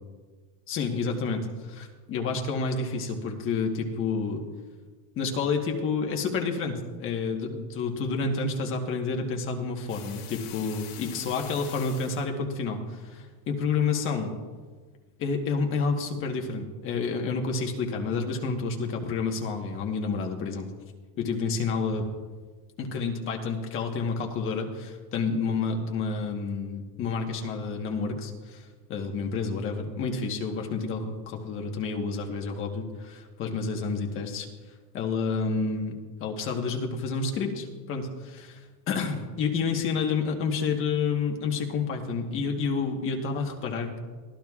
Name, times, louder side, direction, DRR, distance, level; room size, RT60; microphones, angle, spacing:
voice 1, 0.7-4.4 5.2-14.3 15.2-20.7 21.2-22.1 22.8-34.5 34.9-35.9 36.2-38.6 38.9-44.0, left 4 dB, 30° left, 2 dB, 1.3 m, -29 dB
sound 1, 9.9-12.2, left 10 dB, 50° left, 3.7 m, -44 dB
23.0 x 16.0 x 2.4 m, 1.4 s
cardioid pair, 175°, 43 cm